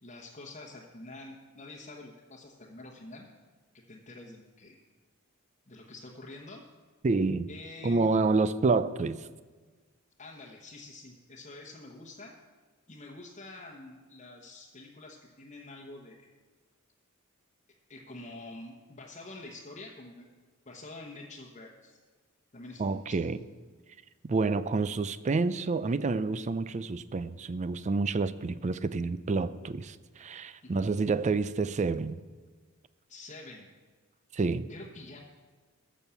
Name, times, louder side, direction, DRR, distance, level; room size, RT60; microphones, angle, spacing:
voice 1, 0.0-3.3 3.9-4.8 5.7-6.6 7.5-8.2 10.2-12.3 12.9-16.3 17.9-20.2 20.7-22.0 22.5-23.1 30.6-30.9 33.1-33.7 34.7-35.2, left 2 dB, 35° left, 1.1 m, -47 dB
voice 2, 7.0-7.5 7.8-9.2 22.8-23.4 24.2-32.2 34.3-34.7, right 3 dB, 35° right, 0.4 m, -28 dB
14.5 x 6.3 x 7.0 m
head